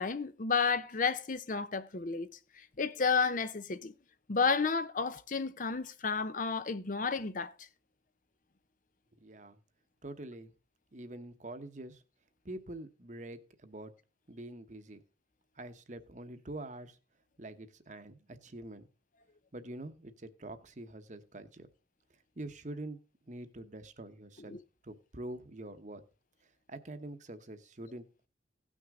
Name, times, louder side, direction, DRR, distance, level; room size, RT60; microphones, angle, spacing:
voice 1, 0.0-2.3 2.6-3.9 4.3-7.5 24.5-24.6, left 5 dB, 45° left, 0.7 m, -31 dB
voice 2, 9.2-9.6 10.0-10.5 10.9-12.0 12.4-13.9 14.3-15.0 15.6-17.0 17.4-18.9 19.5-20.1 20.4-21.7 22.4-23.0 23.3-24.5 24.8-26.0 26.7-28.0, right 1 dB, 45° right, 1.0 m, -45 dB
17.0 x 6.2 x 3.7 m
head